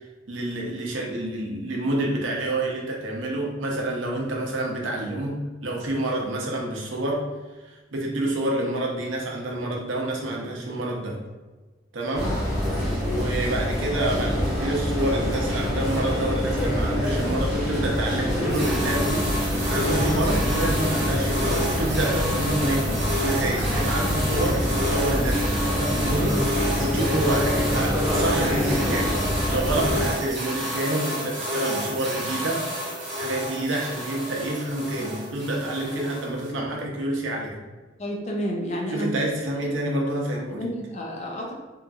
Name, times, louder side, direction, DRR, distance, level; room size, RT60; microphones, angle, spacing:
voice 1, 0.3-7.3 7.6-11.2 11.9-12.3 13.0-29.1 29.5-32.7 33.1-37.6 38.9-40.6, right 1 dB, 85° right, -1 dB, 0.6 m, -28 dB
sound 1, 12.1-30.1, equal, 5° right, 1.0 m, -25 dB
sound 2, 18.5-36.5, equal, 40° right, 0.8 m, -30 dB
voice 2, 38.0-39.1 40.5-41.5, equal, 35° left, -1 dB, 0.5 m, -30 dB
2.9 x 2.5 x 2.3 m, 1.2 s
head